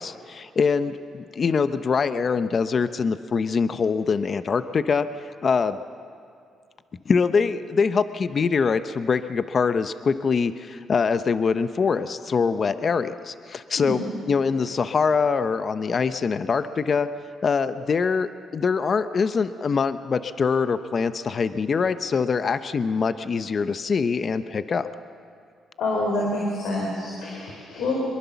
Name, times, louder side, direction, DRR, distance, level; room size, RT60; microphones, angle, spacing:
voice 1, 0.0-5.8 7.1-14.0 14.3-17.1 17.4-24.9, left 5 dB, 45° left, 12 dB, 0.8 m, -24 dB
voice 2, 25.8-28.0, left 2 dB, 80° left, -2 dB, 4.6 m, -27 dB
24.0 x 22.0 x 7.1 m, 2.3 s
cardioid pair, 90°, 0 cm